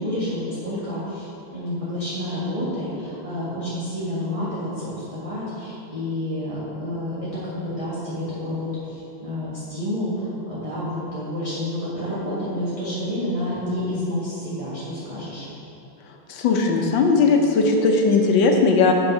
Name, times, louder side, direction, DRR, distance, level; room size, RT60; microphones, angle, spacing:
voice 1, 0.0-15.4, left 1 dB, 20° right, -10 dB, 1.2 m, -29 dB
voice 2, 16.3-18.9, left 4 dB, 70° left, 2 dB, 1.4 m, -18 dB
8.7 x 4.8 x 5.4 m, 2.8 s
omnidirectional pair, 2.3 m